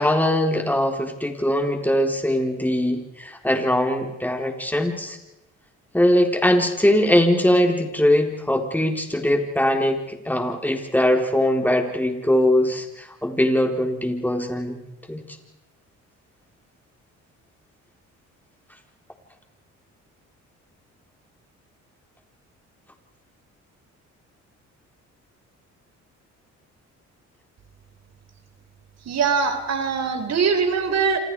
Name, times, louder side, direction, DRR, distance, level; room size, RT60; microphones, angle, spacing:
voice 1, 0.0-5.2 5.9-14.8 15.1-15.2, left 1 dB, 5° left, 4 dB, 4.1 m, -21 dB
voice 2, 29.1-31.2, right 5 dB, 60° right, 8 dB, 3.7 m, -22 dB
27.5 x 27.5 x 4.9 m, 0.91 s
cardioid pair, 90°, 30 cm